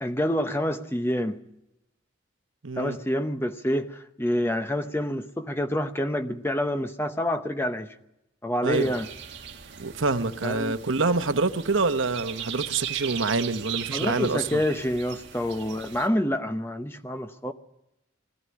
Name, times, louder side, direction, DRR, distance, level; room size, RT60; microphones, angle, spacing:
voice 1, 0.0-1.4 2.8-7.9 8.4-9.1 10.4-10.8 13.9-17.5, left 1 dB, 10° left, 0.8 m, -27 dB
voice 2, 2.6-3.0 8.6-8.9 9.8-14.6, right 3 dB, 80° right, 1.0 m, -26 dB
sound 1, 8.7-16.1, right 9 dB, 60° right, 1.7 m, -38 dB
20.5 x 14.0 x 9.7 m
head